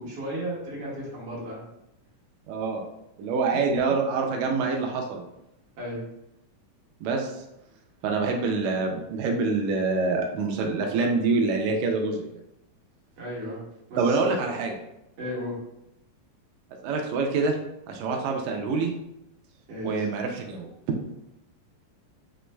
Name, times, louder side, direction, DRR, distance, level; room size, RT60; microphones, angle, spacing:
voice 1, 0.0-1.6 5.8-6.0 13.2-13.6 13.9-14.3 15.2-15.5 19.7-20.1, equal, 55° right, -7 dB, 2.4 m, -34 dB
voice 2, 2.5-2.8 3.2-5.2 7.0-7.3 8.0-12.4 14.0-14.8 16.8-17.6 17.9-18.9 19.8-20.7, right 4 dB, 90° right, 2 dB, 1.6 m, -26 dB
6.4 x 3.0 x 2.2 m, 0.85 s
omnidirectional pair, 3.8 m